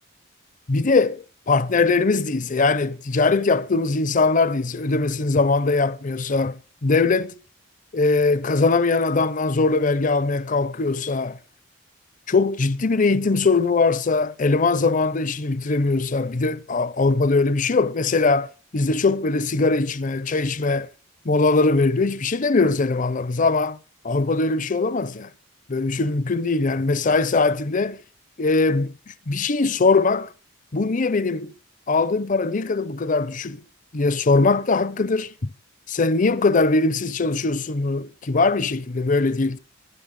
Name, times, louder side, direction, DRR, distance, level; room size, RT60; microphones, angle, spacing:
voice 1, 0.7-7.4 7.9-11.4 12.3-20.9 21.2-23.8 24.0-25.3 25.7-28.0 28.4-30.3 30.7-31.5 31.9-33.6 33.9-35.5 35.9-39.6, left 3 dB, 40° left, 0.6 m, -21 dB
24.5 x 10.5 x 3.8 m
head